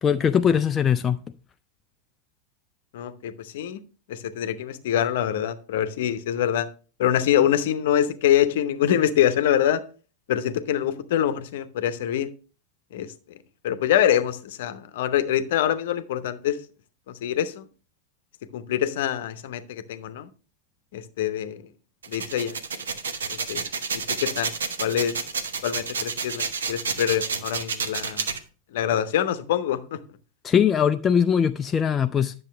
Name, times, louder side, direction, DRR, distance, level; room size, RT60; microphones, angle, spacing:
voice 1, 0.0-1.2 30.4-32.3, left 8 dB, 20° left, 0.3 m, -21 dB
voice 2, 2.9-3.8 4.1-6.7 7.0-9.8 10.3-12.3 12.9-13.1 13.6-16.6 17.1-17.6 18.5-20.3 20.9-21.6 22.1-22.6 23.3-23.7 23.9-24.5 24.8-25.2 25.6-28.3 28.7-30.0, left 10 dB, 55° left, 0.7 m, -25 dB
sound 1, 22.0-28.4, right 5 dB, 70° right, 0.9 m, -29 dB
10.0 x 6.8 x 3.3 m
figure-of-eight pair, 90°, 0 cm